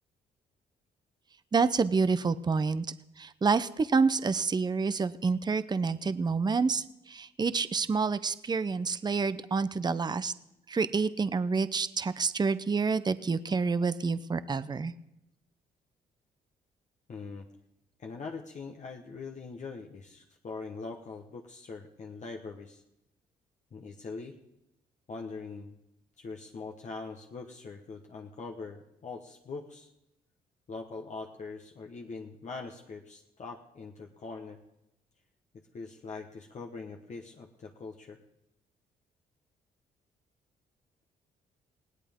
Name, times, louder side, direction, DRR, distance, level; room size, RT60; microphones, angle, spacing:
voice 1, 1.5-2.9 3.2-10.3 10.7-14.9, right 4 dB, 25° right, 13 dB, 0.7 m, -28 dB
voice 2, 17.1-17.4 18.0-22.8 23.7-24.4 25.1-25.8 26.2-29.9 30.7-34.6 35.7-38.2, left 4 dB, 50° left, 2 dB, 1.3 m, -42 dB
19.5 x 17.0 x 3.7 m, 0.85 s
cardioid pair, 75°, 16 cm